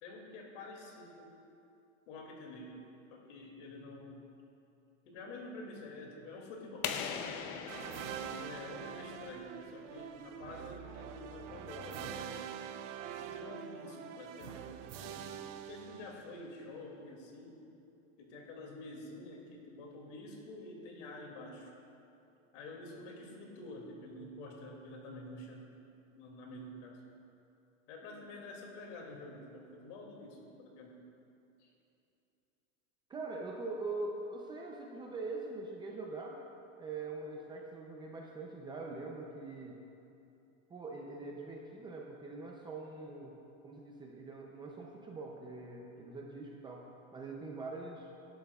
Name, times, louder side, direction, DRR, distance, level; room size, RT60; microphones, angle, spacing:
voice 1, 0.0-1.3 2.1-2.8 3.1-4.2 5.0-7.5 8.2-12.4 13.2-14.7 15.0-15.3 15.6-17.6 18.2-21.7 22.5-25.7 26.1-27.0 27.9-31.0 31.6-31.7, left 2 dB, 60° left, 0 dB, 2.5 m, -48 dB
sound 1, 6.8-9.5, left 7 dB, 35° left, 0.6 m, -41 dB
sound 2, 7.7-16.5, right 9 dB, 65° right, 0.7 m, -45 dB
voice 2, 33.1-36.4 36.8-39.8 40.7-43.3 43.6-46.8 47.1-48.1, right 3 dB, 10° right, -1 dB, 0.5 m, -43 dB
19.0 x 11.0 x 2.4 m, 2.8 s
supercardioid pair, 155°, 40 cm